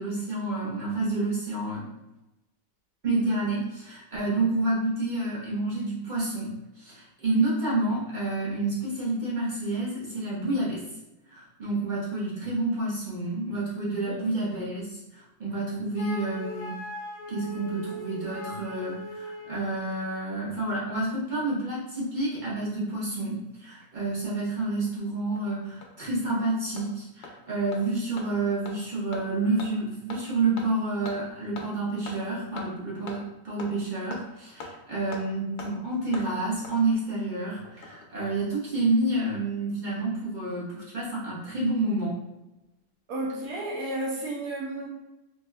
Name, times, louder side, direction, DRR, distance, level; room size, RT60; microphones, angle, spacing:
voice 1, 0.0-1.9 3.0-10.8 11.3-16.8 17.3-42.2, right 2 dB, 40° right, -8 dB, 0.7 m, -29 dB
Wind instrument woodwind instrument, 15.9-19.7, equal, 70° left, 0.3 m, -39 dB
Hammer, 24.9-25.0 25.4-25.5 25.8-25.9 26.3-26.4 26.8-26.9 27.2-27.3 27.7-27.8 28.2-28.3 28.7-28.8 29.1-29.2 29.6-29.7 30.1-30.2 30.6-30.7 31.1-31.2 31.6-31.7 32.1-32.2 32.6-32.7 33.1-33.2 33.6-33.7 34.1-34.2 34.6-34.7 35.1-35.2 35.6-35.7 36.1-36.3 36.6-36.7 37.7-38.1 38.3-38.4, left 3 dB, 85° left, 1.1 m, -40 dB
voice 2, 43.1-44.9, right 1 dB, 85° right, -4 dB, 1.2 m, -32 dB
3.2 x 2.8 x 2.2 m, 0.95 s
omnidirectional pair, 1.7 m